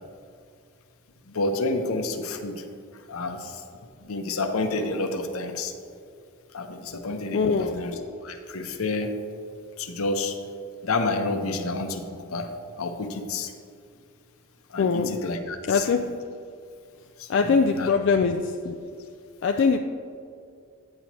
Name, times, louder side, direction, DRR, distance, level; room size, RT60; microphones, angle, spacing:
voice 1, 1.3-2.6 3.1-3.6 4.1-5.7 6.5-9.1 9.8-10.4 10.8-12.5 12.8-13.5 14.7-15.9 17.2-17.9, left 3 dB, 75° left, 6 dB, 0.7 m, -29 dB
voice 2, 7.3-7.9 14.8-15.2 15.7-16.2 17.3-18.8 19.4-19.8, left 5 dB, 55° left, 4 dB, 0.3 m, -22 dB
9.7 x 8.2 x 3.0 m, 2.4 s
head